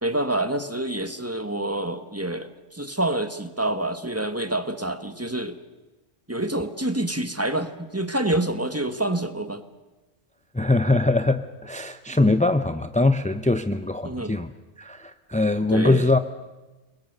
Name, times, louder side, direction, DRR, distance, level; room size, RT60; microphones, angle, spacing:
voice 1, 0.0-5.6 6.3-9.6 14.0-14.4 15.7-16.1, right 1 dB, 10° right, 9 dB, 1.3 m, -27 dB
voice 2, 10.5-14.5 14.8-16.2, left 2 dB, 10° left, 10 dB, 0.4 m, -22 dB
29.5 x 21.0 x 6.7 m, 1.1 s
omnidirectional pair, 1.3 m